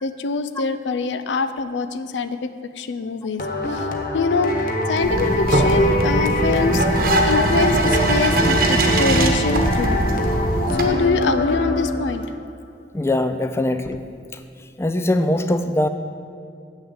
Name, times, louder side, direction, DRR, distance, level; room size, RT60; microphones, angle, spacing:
voice 1, 0.0-3.4 3.7-3.9 4.1-4.5 4.9-10.0 10.7-12.2, left 3 dB, 90° left, 12 dB, 0.5 m, -24 dB
sound 1, 3.4-12.3, left 1 dB, 50° left, 0.9 m, -24 dB
sound 2, 5.0-10.8, right 1 dB, 55° right, 1.1 m, -20 dB
voice 2, 12.9-14.0 14.8-15.9, left 1 dB, 15° left, 9 dB, 0.3 m, -21 dB
7.4 x 6.4 x 8.0 m, 2.4 s
head